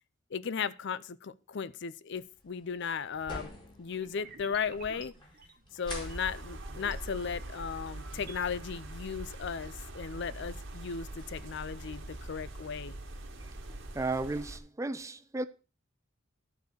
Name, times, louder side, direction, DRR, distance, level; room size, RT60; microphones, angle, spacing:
voice 1, 0.3-3.5 3.8-5.1 5.7-13.0, left 6 dB, 55° left, 0.5 m, -36 dB
sound 1, 2.1-13.8, left 1 dB, 20° left, 2.4 m, -52 dB
sound 2, 3.9-7.0 7.4-8.4, right 4 dB, 45° right, 1.4 m, -53 dB
sound 3, 5.8-14.6, right 1 dB, 60° right, 1.6 m, -43 dB
voice 2, 13.9-15.4, right 2 dB, 15° right, 0.5 m, -34 dB
12.0 x 4.7 x 6.5 m
head